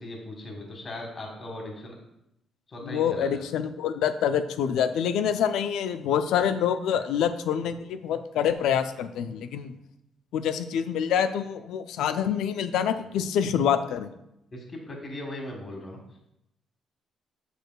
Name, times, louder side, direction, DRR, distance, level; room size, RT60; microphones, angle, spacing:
voice 1, 0.0-2.0 2.7-3.4 13.1-13.3 14.5-16.0, left 1 dB, 40° left, 1 dB, 1.6 m, -38 dB
voice 2, 2.8-9.7 10.3-14.1, left 8 dB, 85° left, 11 dB, 0.4 m, -26 dB
6.6 x 6.5 x 2.2 m, 0.82 s
cardioid pair, 90°, 0 cm